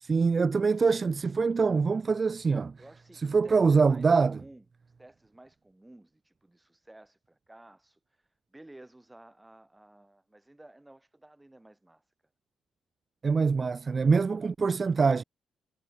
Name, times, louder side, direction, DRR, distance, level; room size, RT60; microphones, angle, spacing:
voice 1, 0.0-2.8 3.2-4.4 13.2-15.2, right 4 dB, 35° right, 0.4 m, -24 dB
voice 2, 2.8-4.6 5.0-12.0, right 1 dB, 10° right, 3.9 m, -54 dB
cardioid pair, 90°, 0 cm